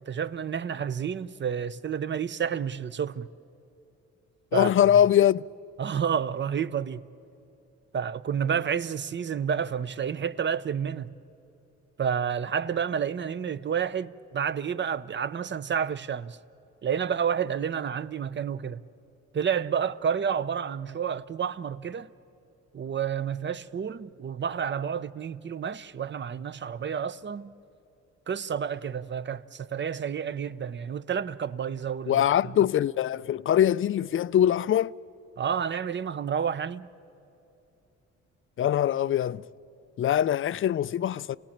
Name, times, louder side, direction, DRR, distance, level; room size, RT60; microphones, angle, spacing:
voice 1, 0.0-3.3 4.5-4.7 5.8-7.1 7.9-11.1 12.0-16.4 16.8-18.8 19.3-22.1 22.7-27.5 28.3-32.2 35.4-36.9, right 7 dB, 40° right, 0.7 m, -30 dB
voice 2, 4.5-5.5 32.1-35.0 38.6-39.5 40.0-41.4, left 10 dB, 45° left, 0.5 m, -23 dB
29.0 x 18.0 x 8.7 m
cardioid pair, 90°, 30 cm